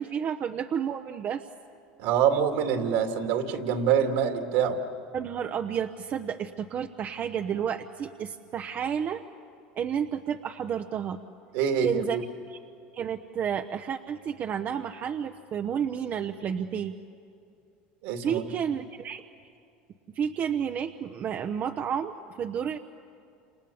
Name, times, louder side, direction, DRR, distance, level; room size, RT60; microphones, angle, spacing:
voice 1, 0.0-1.4 5.1-9.2 9.8-11.2 11.8-12.2 12.5-12.6 12.9-16.9 18.2-19.2 20.1-22.8, right 8 dB, 40° right, 5 dB, 0.9 m, -31 dB
voice 2, 2.0-4.8 11.5-12.2 18.0-18.5, right 8 dB, 70° right, 5 dB, 2.6 m, -25 dB
30.0 x 27.5 x 7.2 m, 2.5 s
hypercardioid pair, 95°, 4 cm